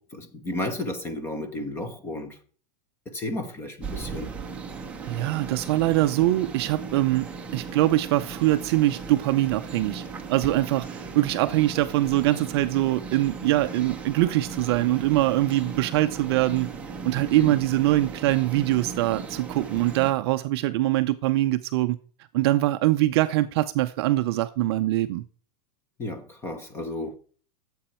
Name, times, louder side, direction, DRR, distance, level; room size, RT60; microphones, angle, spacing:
voice 1, 0.0-2.4 3.1-4.3 17.2-17.6 26.0-27.1, left 1 dB, 10° left, 1.0 m, -33 dB
sound 1, 3.8-20.1, right 5 dB, 5° right, 0.7 m, -37 dB
voice 2, 5.1-7.3 7.5-10.0 10.3-16.7 17.0-22.0 22.3-25.2, right 16 dB, 40° right, 0.5 m, -23 dB
13.0 x 7.8 x 4.4 m
supercardioid pair, 175°, 21 cm